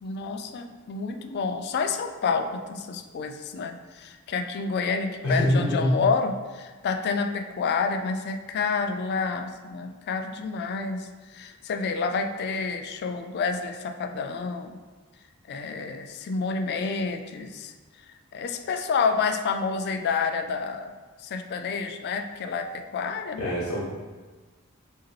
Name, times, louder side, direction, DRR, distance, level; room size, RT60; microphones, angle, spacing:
voice 1, 0.0-14.8 15.5-17.7 18.3-20.9 21.2-23.5, left 5 dB, 50° left, 6 dB, 0.3 m, -29 dB
voice 2, 5.2-5.9 23.4-23.8, left 1 dB, 70° left, -7 dB, 0.9 m, -24 dB
4.8 x 2.9 x 3.0 m, 1.3 s
head